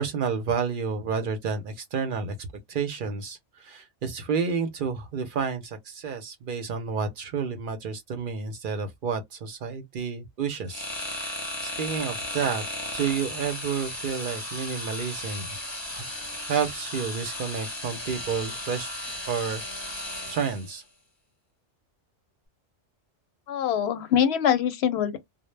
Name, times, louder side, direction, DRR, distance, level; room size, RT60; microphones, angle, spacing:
voice 1, 0.0-12.6 12.9-15.5 15.9-16.1 16.5-18.9 19.3-19.9 20.2-20.8, right 6 dB, 60° right, 0.6 m, -30 dB
sound 1, 10.7-20.8, left 1 dB, 25° left, 0.7 m, -35 dB
voice 2, 23.5-25.2, left 9 dB, 70° left, 0.8 m, -24 dB
2.0 x 2.0 x 3.1 m
omnidirectional pair, 1.2 m